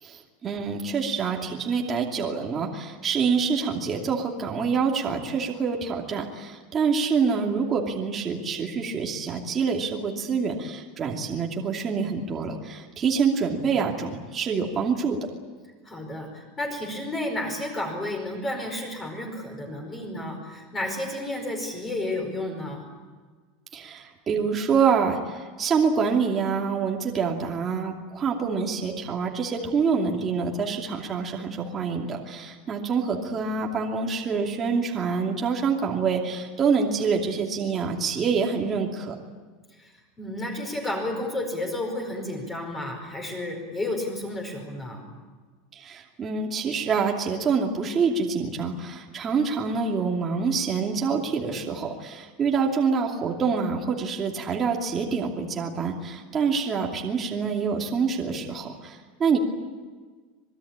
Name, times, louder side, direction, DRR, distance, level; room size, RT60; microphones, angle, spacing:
voice 1, 0.0-15.2 23.7-39.1 45.7-59.4, right 5 dB, 20° right, 0 dB, 2.6 m, -26 dB
voice 2, 15.8-22.8 39.8-39.9 40.2-45.1, left 1 dB, 15° left, 2 dB, 4.9 m, -31 dB
26.0 x 21.5 x 8.9 m, 1.4 s
supercardioid pair, 170°, 0 cm